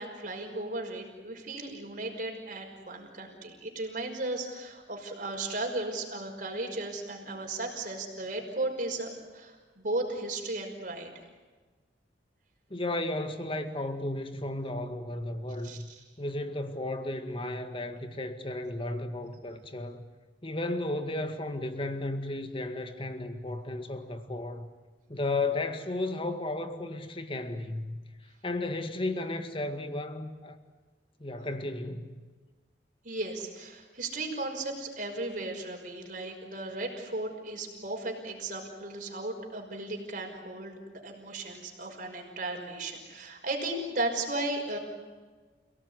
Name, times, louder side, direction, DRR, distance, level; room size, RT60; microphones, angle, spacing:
voice 1, 0.0-11.1 15.6-15.8 33.0-44.8, right 2 dB, 45° right, 2 dB, 5.8 m, -35 dB
voice 2, 12.7-15.8 16.2-20.0 20.4-24.7 25.1-28.0 28.4-30.6 31.2-32.2, left 2 dB, 30° left, 8 dB, 2.0 m, -34 dB
30.0 x 18.0 x 9.8 m, 1.4 s
head